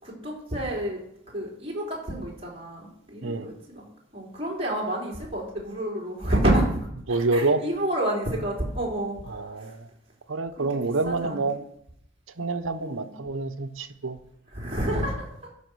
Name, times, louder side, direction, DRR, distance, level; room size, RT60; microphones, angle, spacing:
voice 1, 0.0-1.0 1.3-3.8 4.1-9.7 10.6-11.4 12.8-13.1 14.5-15.1 15.4-15.5, right 1 dB, 30° right, -4 dB, 3.7 m, -29 dB
voice 2, 7.1-7.7 9.3-9.9 10.3-11.6 12.4-14.2, right 3 dB, 75° right, 8 dB, 0.9 m, -27 dB
14.0 x 5.2 x 6.3 m, 0.75 s
head